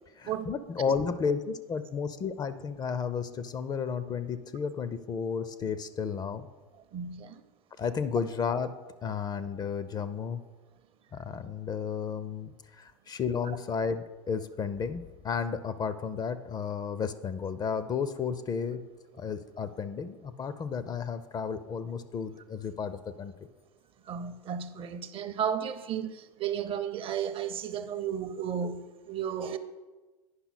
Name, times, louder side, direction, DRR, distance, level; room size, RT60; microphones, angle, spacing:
voice 1, 0.2-6.5 7.8-10.4 11.1-18.8 19.1-23.3, left 6 dB, 25° left, 0.4 m, -33 dB
voice 2, 6.9-7.4 24.1-29.6, right 8 dB, 35° right, 0.6 m, -33 dB
9.5 x 5.6 x 4.2 m
hypercardioid pair, 80°, 16 cm